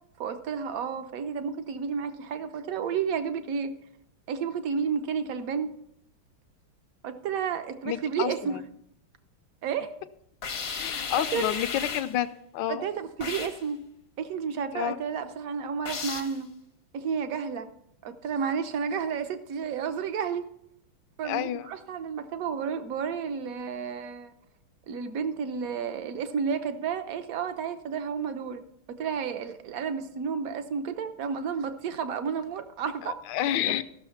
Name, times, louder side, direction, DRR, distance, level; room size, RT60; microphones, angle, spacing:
voice 1, 0.2-3.7 4.3-5.7 7.0-8.6 9.6-9.9 10.9-11.4 12.7-13.8 14.2-16.5 16.9-17.7 18.0-20.4 21.2-24.3 24.9-28.6 28.9-33.2, right 6 dB, 65° right, 9 dB, 0.8 m, -31 dB
voice 2, 7.8-8.6 10.7-12.8 14.7-15.0 21.2-21.7 33.0-33.8, left 12 dB, 75° left, 11 dB, 1.1 m, -29 dB
sound 1, 10.4-12.2 13.2-13.6 15.9-16.4, left 5 dB, 50° left, 0.7 m, -34 dB
14.5 x 6.4 x 5.7 m, 0.76 s
omnidirectional pair, 2.4 m